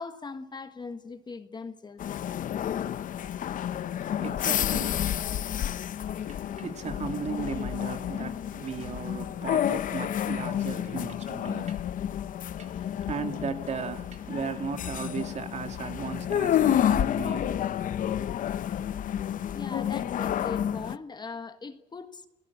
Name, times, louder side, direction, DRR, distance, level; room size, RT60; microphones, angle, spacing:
voice 1, 0.0-2.1 19.5-22.3, left 4 dB, 25° left, 1.5 m, -40 dB
sound 1, 2.0-21.0, left 10 dB, 50° left, 0.8 m, -30 dB
voice 2, 3.5-5.8 6.2-11.9 12.6-17.6, right 6 dB, 40° right, 2.3 m, -37 dB
29.5 x 16.5 x 8.6 m
cardioid pair, 110°, 17 cm